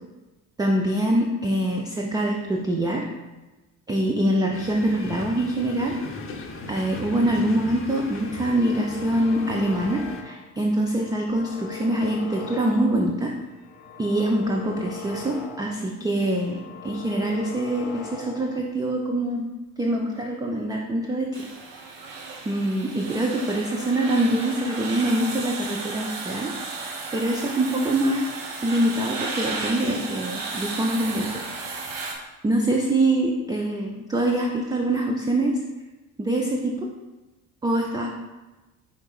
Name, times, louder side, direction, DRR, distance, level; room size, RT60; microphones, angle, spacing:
voice 1, 0.6-3.0 3.9-5.9 6.7-13.3 14.0-19.5 19.8-21.3 22.5-26.5 26.8-28.3 28.6-31.3 32.4-35.6 36.2-36.8 37.6-38.1, right 1 dB, 10° right, 0 dB, 0.3 m, -24 dB
sound 1, 4.5-10.2, left 3 dB, 30° left, 0.7 m, -38 dB
sound 2, 8.1-10.4 10.8-13.2 13.5-15.9 16.2-18.6, left 6 dB, 75° left, 0.6 m, -40 dB
sound 3, 21.3-32.1, right 3 dB, 65° right, 0.9 m, -34 dB
4.5 x 4.2 x 2.3 m, 1.1 s
hypercardioid pair, 50°, 46 cm